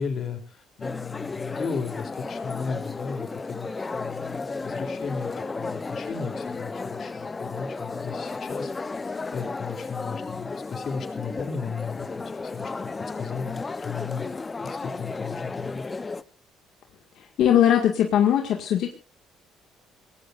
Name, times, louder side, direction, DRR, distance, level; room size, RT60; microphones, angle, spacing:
voice 1, 0.0-14.3 14.6-15.8, left 5 dB, 50° left, 6 dB, 3.3 m, -35 dB
sound 1, 0.8-16.2, left 3 dB, 25° left, 0.8 m, -34 dB
voice 2, 17.4-18.9, left 10 dB, 70° left, 3 dB, 2.0 m, -20 dB
23.5 x 18.5 x 2.6 m, 0.33 s
cardioid pair, 100°, 0 cm